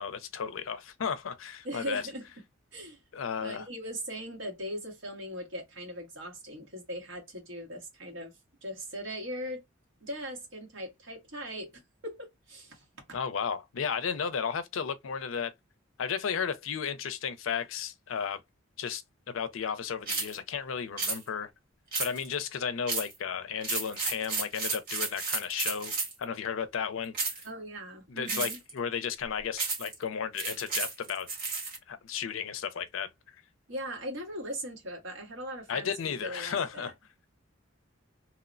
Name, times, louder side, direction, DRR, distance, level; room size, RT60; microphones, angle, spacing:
voice 1, 0.0-2.0 3.1-3.7 13.1-15.5 16.0-18.4 18.8-19.0 19.3-21.5 22.0-27.1 28.1-31.3 31.9-33.1 35.7-36.9, left 7 dB, 80° left, 0.5 m, -34 dB
voice 2, 1.6-2.2 2.7-3.0 3.4-8.4 8.6-9.6 10.0-13.2 27.4-28.6 33.7-36.9, equal, 65° right, 1.2 m, -39 dB
sound 1, 20.1-20.4 21.0-21.2 21.9-22.3 22.9-23.2 23.6-26.2 27.1-27.5 28.3-28.7 29.6-29.9 30.4-31.8, right 3 dB, 45° right, 1.5 m, -32 dB
2.9 x 2.0 x 2.4 m
head